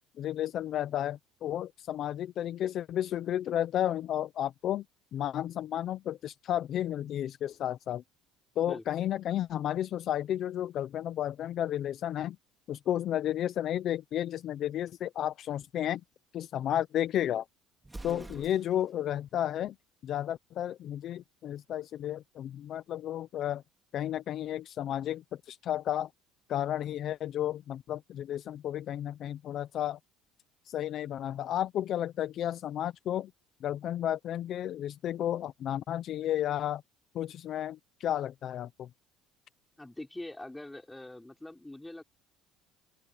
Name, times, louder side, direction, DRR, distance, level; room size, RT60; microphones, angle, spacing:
voice 1, 0.2-4.8 5.1-8.0 8.6-12.4 12.7-16.0 16.3-17.4 18.0-19.8 20.0-23.6 23.9-26.1 26.5-30.0 30.7-33.3 33.6-36.8 37.1-38.9, left 11 dB, 55° left, 0.8 m, -32 dB
Explosion, 17.8-19.0, right 2 dB, 10° right, 2.6 m, -46 dB
voice 2, 18.0-18.5 39.8-42.0, left 1 dB, 10° left, 5.8 m, -44 dB
open air
cardioid pair, 110°, 0 cm